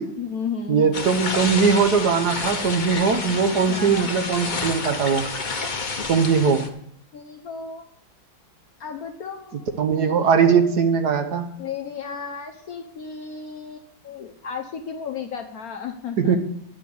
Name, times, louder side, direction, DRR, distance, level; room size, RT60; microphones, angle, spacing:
voice 1, 0.2-1.0 3.7-4.1 6.3-6.4 7.1-7.9 8.8-10.8 11.6-16.4, left 6 dB, 60° left, 4 dB, 1.1 m, -34 dB
voice 2, 0.7-5.3 6.1-6.7 9.8-11.4 16.2-16.4, right 6 dB, 60° right, 6 dB, 1.3 m, -20 dB
sound 1, 0.9-6.7, left 4 dB, 40° left, 0.6 m, -29 dB
10.5 x 6.1 x 6.9 m, 0.71 s
omnidirectional pair, 2.2 m